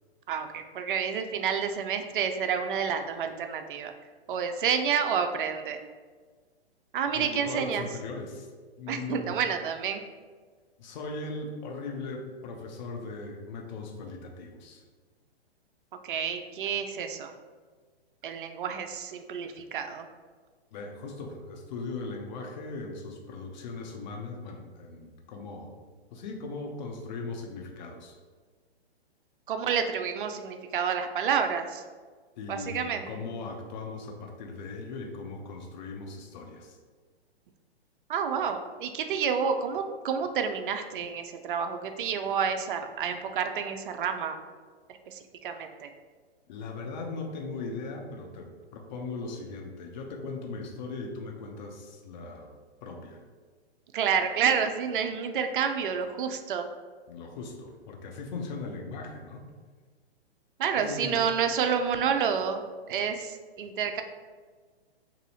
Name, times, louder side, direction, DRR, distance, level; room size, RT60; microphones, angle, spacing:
voice 1, 0.3-3.9 4.3-5.8 6.9-7.9 8.9-10.0 16.0-17.3 18.2-20.1 29.5-31.8 32.5-33.1 38.1-44.4 45.1-45.9 53.9-56.7 60.6-64.0, right 7 dB, 55° right, 7 dB, 0.4 m, -29 dB
voice 2, 7.1-8.5 8.8-9.4 10.8-14.8 20.7-25.7 26.1-28.1 32.4-36.8 46.5-52.5 52.8-53.2 57.1-59.4 60.8-61.3, left 3 dB, 45° left, 2 dB, 0.6 m, -39 dB
2.7 x 2.6 x 4.1 m, 1.5 s
hypercardioid pair, 130°, 32 cm